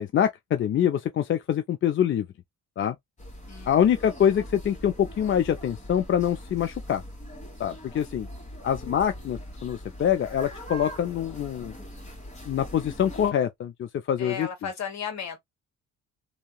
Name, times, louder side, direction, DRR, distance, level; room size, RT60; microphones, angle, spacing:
voice 1, 0.0-2.3 2.8-3.0 3.7-7.0 7.6-8.3 8.6-11.7 12.5-14.5, left 9 dB, 45° left, 0.4 m, -25 dB
sound 1, 3.2-13.3, equal, 25° left, 1.7 m, -42 dB
voice 2, 3.5-3.9 14.2-15.4, left 7 dB, 65° left, 1.3 m, -35 dB
2.9 x 2.8 x 2.3 m
cardioid pair, 90°, 30 cm